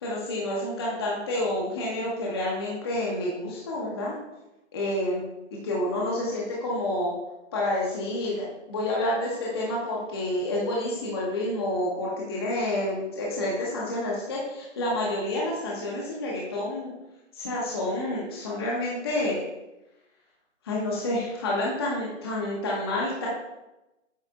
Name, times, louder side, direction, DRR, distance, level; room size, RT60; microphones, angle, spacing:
voice 1, 0.0-4.1 4.7-5.2 5.6-7.1 7.5-16.9 17.3-19.4 20.6-23.3, left 1 dB, 20° left, -4 dB, 0.8 m, -29 dB
8.3 x 3.2 x 5.0 m, 0.96 s
hypercardioid pair, 175°, 37 cm